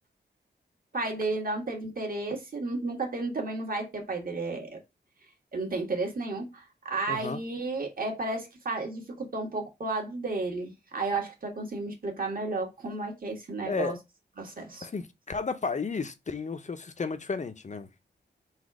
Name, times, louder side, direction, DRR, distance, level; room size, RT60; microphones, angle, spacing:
voice 1, 0.9-4.8 5.5-13.9 14.4-14.9, right 3 dB, 50° right, 1.5 m, -32 dB
voice 2, 7.1-7.4 13.7-14.0 14.8-17.9, left 4 dB, 40° left, 0.6 m, -33 dB
4.1 x 2.4 x 4.7 m
wide cardioid pair, 90°, 19 cm